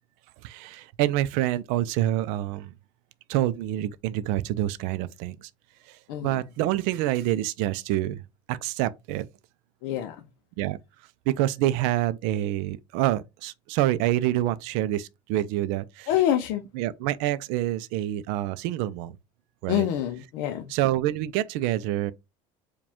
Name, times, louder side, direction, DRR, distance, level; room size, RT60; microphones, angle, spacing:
voice 1, 0.4-2.7 3.3-5.5 6.2-8.2 8.5-9.3 10.6-10.8 11.3-16.1 16.7-19.1 19.6-19.9 20.7-22.1, right 14 dB, 70° right, 0.4 m, -27 dB
voice 2, 6.1-6.4 9.8-10.2 16.1-16.6 19.7-20.7, left 11 dB, 70° left, 0.5 m, -26 dB
4.9 x 2.3 x 3.5 m
cardioid pair, 180°, 14 cm